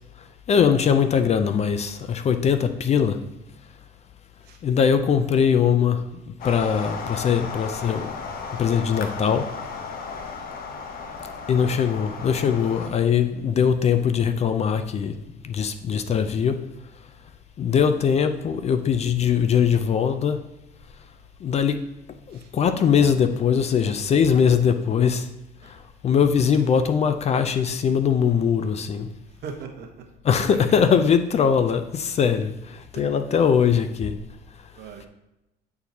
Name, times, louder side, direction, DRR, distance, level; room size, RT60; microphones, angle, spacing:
voice 1, 0.5-3.2 4.6-8.2 8.6-9.5 11.5-15.2 15.4-16.6 17.6-20.4 21.4-21.8 22.3-25.3 25.6-29.1 30.2-34.2, left 7 dB, 40° left, 9 dB, 0.4 m, -21 dB
sound 1, 6.4-12.9, left 5 dB, 60° left, 0.8 m, -35 dB
voice 2, 17.7-18.0 22.3-22.5 25.6-25.7 29.4-30.1 30.4-30.8 32.9-33.2 34.8-35.1, right 6 dB, 70° right, 3 dB, 1.0 m, -39 dB
8.5 x 4.5 x 2.7 m, 0.93 s
cardioid pair, 110°, 17 cm